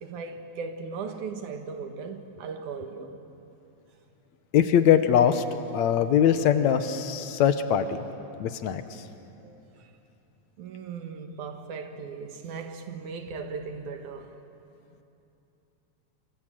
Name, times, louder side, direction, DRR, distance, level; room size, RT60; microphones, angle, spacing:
voice 1, 0.0-3.2 9.4-9.9 10.6-14.4, right 5 dB, 80° right, 3.0 m, -38 dB
voice 2, 4.5-5.4 5.7-7.9 8.4-8.8, left 9 dB, 75° left, 2.2 m, -21 dB
26.5 x 25.5 x 7.6 m
omnidirectional pair, 3.4 m